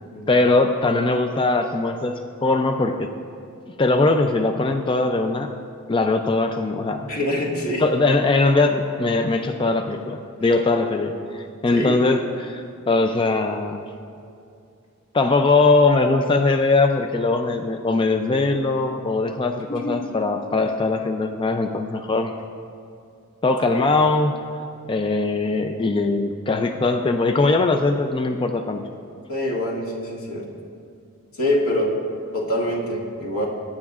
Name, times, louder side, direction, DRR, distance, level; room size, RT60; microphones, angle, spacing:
voice 1, 0.3-3.1 3.8-5.5 5.9-7.1 7.8-13.8 15.1-22.3 23.4-24.4 24.9-28.8, left 3 dB, 25° left, 6 dB, 0.4 m, -21 dB
voice 2, 7.1-7.8 11.7-12.0 19.7-20.1 23.7-23.8 29.3-30.5 31.3-31.9 32.3-33.4, left 1 dB, 80° left, -3 dB, 2.0 m, -25 dB
22.0 x 9.8 x 2.4 m, 2.5 s
head